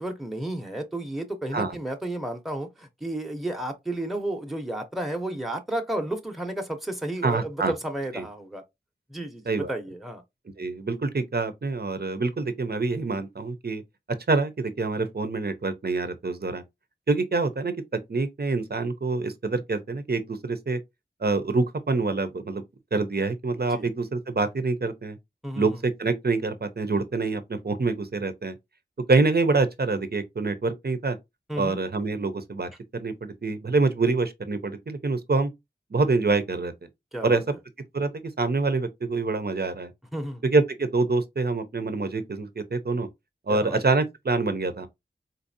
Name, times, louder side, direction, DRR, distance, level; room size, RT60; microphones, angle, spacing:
voice 1, 0.0-8.6 9.1-10.2 23.7-23.9 25.4-25.8 31.5-31.8 37.1-37.4 40.1-40.4 43.5-43.8, right 1 dB, ahead, 0.8 m, -32 dB
voice 2, 7.2-7.7 8.1-8.3 9.5-9.7 10.6-13.8 14.3-16.6 17.1-17.7 18.1-20.8 21.2-22.6 22.9-25.2 25.6-28.6 29.1-31.2 31.6-35.5 35.9-36.7 37.2-37.4 37.9-39.9 40.4-43.1 43.5-44.9, right 3 dB, 55° right, 0.7 m, -26 dB
4.0 x 2.6 x 2.7 m
wide cardioid pair, 45°, 19 cm